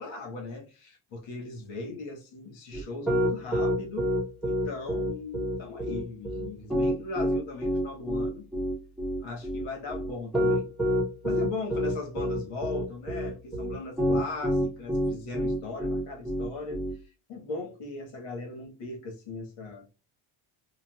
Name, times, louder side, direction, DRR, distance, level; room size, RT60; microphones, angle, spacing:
voice 1, 0.0-4.1 4.4-8.5 9.2-10.7 11.2-16.8 17.3-19.9, left 3 dB, 90° left, 1.4 m, -38 dB
Piano, 2.7-16.9, equal, ahead, 0.7 m, -27 dB
3.9 x 2.3 x 2.3 m
cardioid pair, 170°, 43 cm